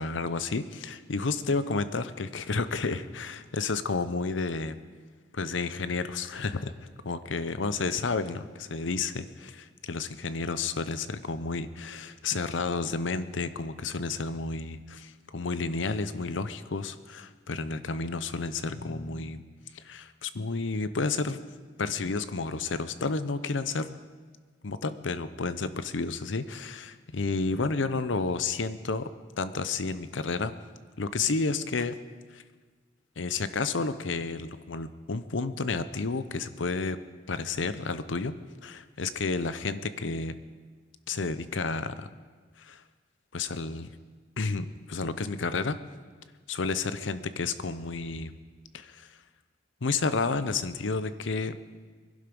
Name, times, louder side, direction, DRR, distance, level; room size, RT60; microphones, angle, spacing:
voice 1, 0.0-4.8 5.3-6.7 7.0-19.4 19.7-21.4 21.8-23.9 24.6-29.1 29.4-30.5 31.0-32.0 32.3-32.4 33.2-37.0 37.3-38.3 38.6-40.3 41.1-42.1 42.6-42.8 43.3-43.9 44.4-45.8 46.5-48.3 48.7-49.2 49.8-51.6, left 4 dB, 75° left, 13 dB, 0.7 m, -31 dB
21.5 x 11.5 x 5.3 m, 1.5 s
head